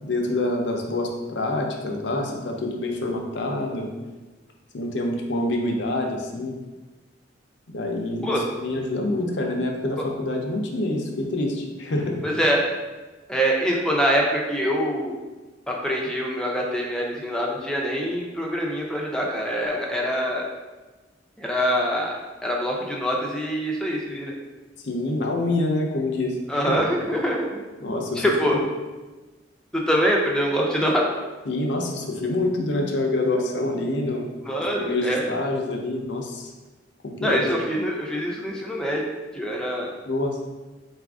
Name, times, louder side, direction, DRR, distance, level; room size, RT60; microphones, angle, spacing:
voice 1, 0.0-3.9 4.7-6.5 7.7-12.2 24.8-26.7 27.8-28.2 28.5-28.6 31.5-34.2 34.8-36.5 37.0-37.4 40.0-40.4, left 2 dB, 70° left, 1 dB, 0.6 m, -26 dB
voice 2, 12.2-12.6 13.3-15.1 15.7-20.4 21.4-22.1 22.4-24.3 26.5-27.6 28.1-28.6 29.7-31.0 34.5-35.2 37.2-39.0 39.3-39.9, equal, 5° left, -2 dB, 0.5 m, -24 dB
4.0 x 2.5 x 3.5 m, 1.2 s
head